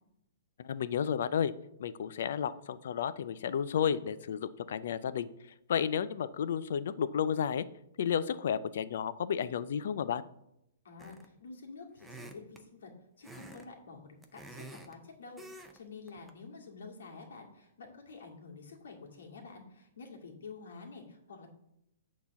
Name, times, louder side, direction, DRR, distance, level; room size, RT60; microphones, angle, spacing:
voice 1, 0.6-1.5 1.8-5.3 5.7-7.6 8.0-10.2, left 8 dB, 55° left, 15 dB, 0.5 m, -32 dB
voice 2, 10.8-12.9 13.2-21.5, left 4 dB, 80° left, 1 dB, 2.2 m, -49 dB
sound 1, 11.0-11.4 12.0-12.6 13.2-13.7 14.0-15.0 15.4-15.8 16.1-16.3, right 1 dB, 5° right, 0.5 m, -48 dB
8.6 x 4.0 x 7.0 m, 0.81 s
hypercardioid pair, 175°, 0 cm